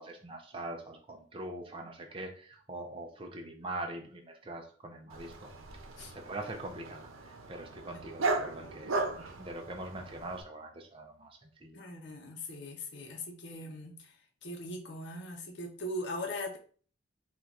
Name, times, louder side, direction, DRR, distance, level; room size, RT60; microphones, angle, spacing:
voice 1, 0.0-5.5 5.9-11.9, right 2 dB, 25° right, 2 dB, 0.5 m, -43 dB
Dog, 5.1-10.4, right 3 dB, 85° right, 0.7 m, -37 dB
voice 2, 11.7-14.1 14.4-16.6, left 1 dB, 60° left, 2 dB, 0.8 m, -40 dB
3.9 x 2.4 x 4.5 m, 0.43 s
head